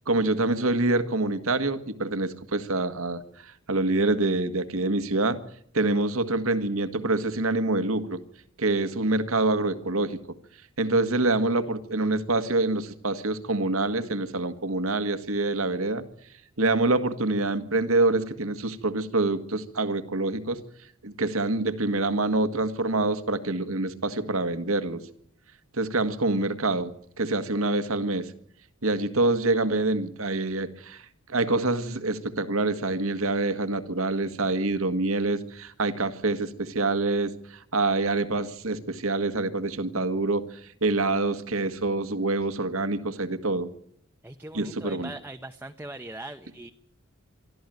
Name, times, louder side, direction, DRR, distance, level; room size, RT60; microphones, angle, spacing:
voice 1, 0.1-5.4 5.7-8.2 8.6-10.2 10.8-16.0 16.6-20.6 21.0-25.0 25.7-28.3 28.8-31.0 31.3-37.3 37.7-40.4 40.8-43.7 44.5-45.1, right 2 dB, 75° right, 11 dB, 1.7 m, -26 dB
voice 2, 44.2-46.7, right 2 dB, 10° right, 5 dB, 0.9 m, -41 dB
24.0 x 13.5 x 9.3 m, 0.67 s
head